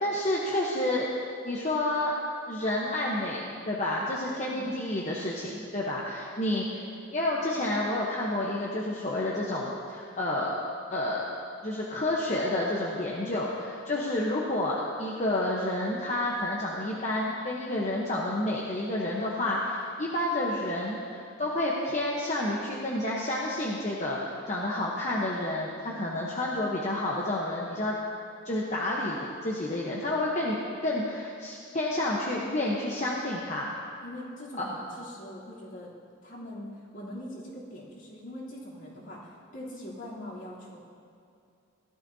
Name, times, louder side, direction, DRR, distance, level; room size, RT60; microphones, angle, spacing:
voice 1, 0.0-1.1 1.4-2.1 2.5-6.8 7.1-10.6 10.9-11.2 11.6-27.9 28.4-30.6 30.8-33.7 34.6-34.7, left 1 dB, 35° left, -4 dB, 1.0 m, -30 dB
voice 2, 4.4-4.7 6.4-6.6 34.0-35.9 36.2-40.8, left 1 dB, 60° left, -8 dB, 3.2 m, -42 dB
17.0 x 12.5 x 2.8 m, 2.5 s
head